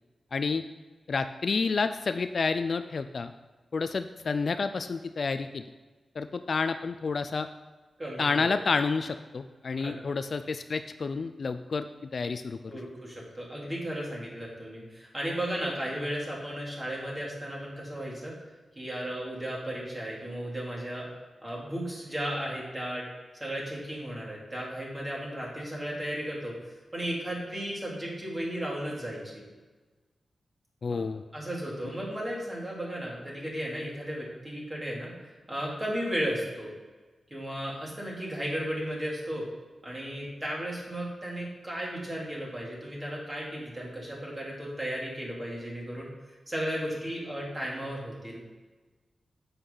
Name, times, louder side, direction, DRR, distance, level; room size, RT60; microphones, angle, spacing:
voice 1, 0.3-0.6 1.1-3.3 3.7-5.6 6.2-7.5 8.2-12.7 30.8-31.2, left 4 dB, 50° left, 10 dB, 0.4 m, -29 dB
voice 2, 8.0-8.5 9.8-9.9 12.7-18.3 18.7-21.1 21.4-23.0 23.4-26.5 26.9-29.4 30.9-31.0 31.3-35.1 35.5-36.7 37.3-39.4 39.8-46.1 46.5-48.4, equal, 20° right, -4 dB, 2.9 m, -35 dB
9.8 x 8.0 x 3.9 m, 1.3 s
wide cardioid pair, 150°, 0 cm